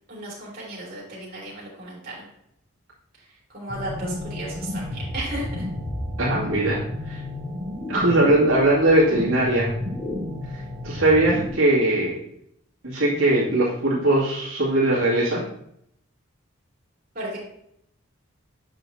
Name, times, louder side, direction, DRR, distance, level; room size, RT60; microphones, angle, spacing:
voice 1, 0.1-2.3 3.5-5.6 17.1-17.4, right 1 dB, 40° right, -6 dB, 3.1 m, -34 dB
sound 1, 3.7-11.5, left 1 dB, 5° right, 2.7 m, -32 dB
voice 2, 6.2-6.8 7.1-7.2 7.9-9.7 10.5-12.2 12.8-15.4, right 1 dB, 75° right, -8 dB, 2.4 m, -20 dB
8.7 x 6.0 x 2.8 m, 0.74 s
head